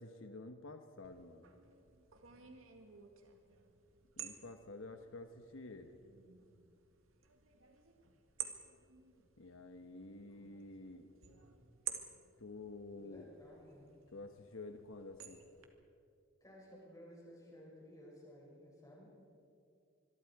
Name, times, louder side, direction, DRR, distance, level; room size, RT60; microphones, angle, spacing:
voice 1, 0.0-1.4 4.2-5.9 9.4-11.1 12.4-13.3 14.1-15.4, left 2 dB, 80° left, 7 dB, 1.2 m, -50 dB
sound 1, 1.0-15.7, right 9 dB, 85° right, 2.0 m, -52 dB
voice 2, 13.0-13.9 16.4-19.1, equal, 15° left, -4 dB, 7.0 m, -56 dB
26.0 x 22.0 x 4.8 m, 2.5 s
head